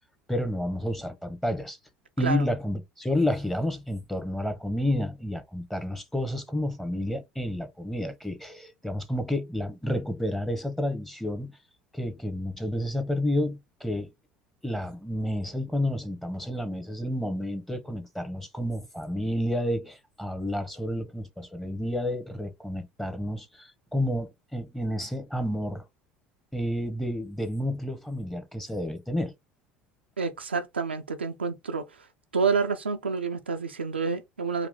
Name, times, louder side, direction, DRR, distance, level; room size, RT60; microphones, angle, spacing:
voice 1, 0.3-1.8 2.2-11.6 11.9-14.1 14.6-25.8 26.5-29.3, left 1 dB, 5° left, 1.2 m, -30 dB
voice 2, 30.2-31.9 32.3-34.7, right 5 dB, 90° right, 0.6 m, -28 dB
4.8 x 2.9 x 3.6 m
figure-of-eight pair, 70°, 6 cm